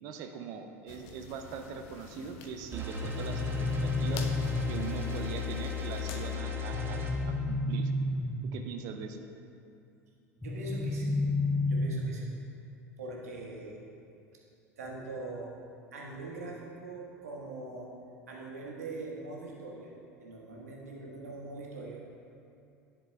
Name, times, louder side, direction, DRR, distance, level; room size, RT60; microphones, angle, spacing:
voice 1, 0.0-4.3 4.7-7.0 7.3-7.9 8.5-9.3, right 6 dB, 50° right, 6 dB, 0.5 m, -41 dB
sound 1, 0.9-6.4, left 6 dB, 55° left, 0.6 m, -48 dB
sound 2, 2.7-7.1, left 6 dB, 25° right, 1.1 m, -35 dB
sound 3, 3.0-5.0 6.7-8.8 10.4-12.4, left 2 dB, 5° left, 0.5 m, -31 dB
voice 2, 10.4-11.2 11.6-12.3 13.0-13.8 14.8-15.5 15.9-17.9 18.3-19.9 20.2-22.0, right 2 dB, 75° right, -3 dB, 1.4 m, -42 dB
10.5 x 6.8 x 2.3 m, 2.6 s
figure-of-eight pair, 75°, 8 cm